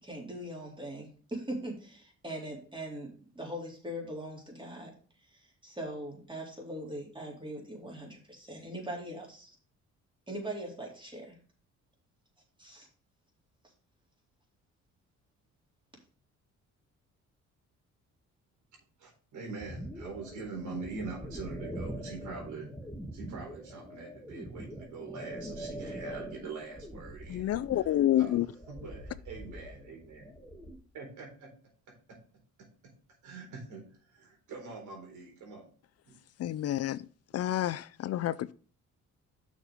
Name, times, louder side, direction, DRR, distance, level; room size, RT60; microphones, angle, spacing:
voice 1, 0.0-3.1 3.4-4.9 5.3-9.5 10.3-11.4 12.6-12.9, right 1 dB, 15° right, 3.8 m, -41 dB
voice 2, 19.0-22.7 23.1-30.3 30.9-31.5 32.6-32.7 33.2-33.8 34.1-35.7 36.1-36.2 37.3-37.5, right 4 dB, 75° right, 4.1 m, -44 dB
sound 1, 19.6-30.8, equal, 5° left, 1.8 m, -43 dB
voice 3, 27.3-28.5 36.4-37.0 37.3-38.5, left 13 dB, 55° left, 0.4 m, -29 dB
6.5 x 6.5 x 4.9 m
cardioid pair, 90°, 30 cm